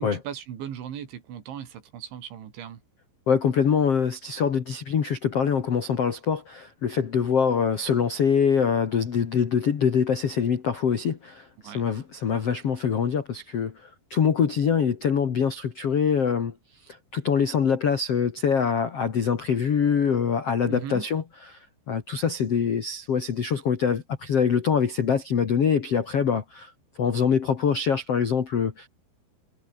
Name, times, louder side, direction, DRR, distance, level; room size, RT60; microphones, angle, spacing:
voice 1, 0.0-2.8 11.6-11.8 20.7-21.1, right 9 dB, 65° right, 5.1 m, -37 dB
voice 2, 3.3-16.5 17.1-21.2 21.9-26.7 27.0-28.9, left 7 dB, 70° left, 1.4 m, -24 dB
omnidirectional pair, 6.0 m